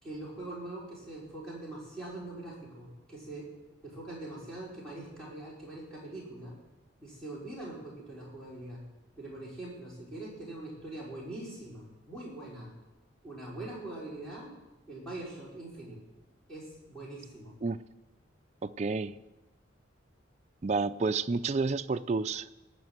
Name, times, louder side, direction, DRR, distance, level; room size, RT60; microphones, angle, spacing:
voice 1, 0.0-3.5 3.8-6.6 7.0-8.8 9.2-12.7 13.2-14.5 14.9-16.0 16.5-17.6, right 2 dB, 5° left, -6 dB, 5.1 m, -43 dB
voice 2, 18.6-19.2 20.6-22.5, right 4 dB, 35° right, 9 dB, 0.4 m, -30 dB
18.5 x 6.5 x 7.9 m, 1.0 s
head